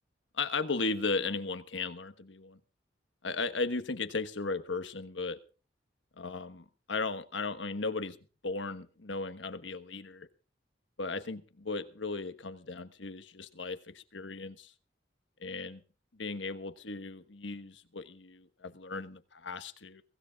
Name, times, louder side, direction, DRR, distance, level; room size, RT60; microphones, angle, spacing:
voice 1, 0.4-2.6 3.2-5.4 6.2-8.2 8.4-10.3 11.0-14.7 15.4-15.8 16.2-20.0, left 3 dB, 85° left, 11 dB, 1.3 m, -36 dB
23.5 x 16.5 x 2.4 m, 0.36 s
head